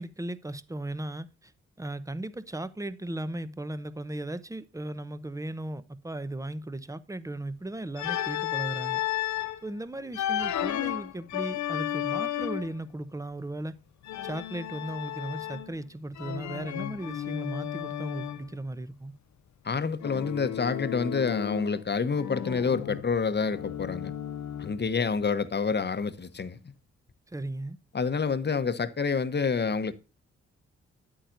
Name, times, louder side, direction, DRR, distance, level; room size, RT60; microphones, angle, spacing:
voice 1, 0.0-1.5 1.8-9.0 9.6-13.8 14.2-19.1 27.3-27.8, right 1 dB, 10° right, 0.9 m, -36 dB
Organ, 8.0-9.6 10.1-12.8 14.0-15.8 16.2-18.5 20.0-21.8 22.1-24.9, left 11 dB, 65° left, 0.7 m, -33 dB
voice 2, 19.6-24.1 24.6-26.7 27.9-29.9, left 5 dB, 35° left, 1.0 m, -28 dB
10.0 x 8.7 x 2.6 m
hypercardioid pair, 40°, 30 cm